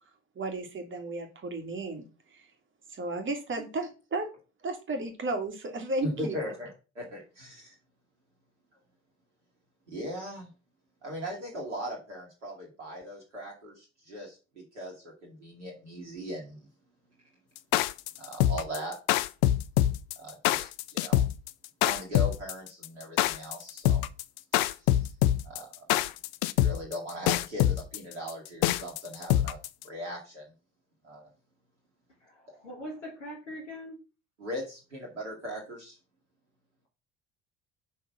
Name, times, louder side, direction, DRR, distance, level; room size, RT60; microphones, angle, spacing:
voice 1, 0.4-2.1 2.3-2.4 2.9-4.3 4.6-6.5, right 2 dB, 35° right, 5 dB, 2.1 m, -34 dB
voice 2, 6.0-7.8 9.9-10.5 11.0-16.7 18.2-19.0 20.2-21.2 21.8-24.0 24.8-25.1 25.4-25.7 26.6-29.6 29.8-30.5 31.0-31.2 34.4-36.0, equal, 85° right, -2 dB, 1.8 m, -39 dB
sound 1, 17.6-29.8, left 13 dB, 60° left, 0.6 m, -25 dB
voice 3, 32.2-34.0, equal, 85° left, -2 dB, 1.8 m, -42 dB
5.5 x 4.6 x 5.8 m, 0.33 s
figure-of-eight pair, 55°, 35 cm